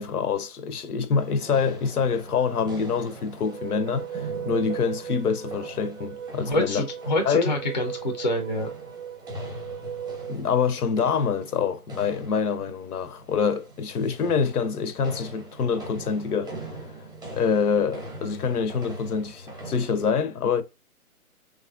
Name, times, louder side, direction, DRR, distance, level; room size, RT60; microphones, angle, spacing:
voice 1, 0.0-6.9 7.2-7.5 10.3-16.5 17.3-20.6, left 6 dB, 75° left, 0.6 m, -26 dB
sound 1, 1.2-20.1, right 2 dB, 15° right, 0.7 m, -41 dB
sound 2, 3.4-10.3, right 8 dB, 55° right, 0.5 m, -37 dB
voice 2, 6.5-8.7, left 1 dB, 35° left, 0.4 m, -26 dB
3.1 x 2.4 x 2.3 m
figure-of-eight pair, 145°, 45 cm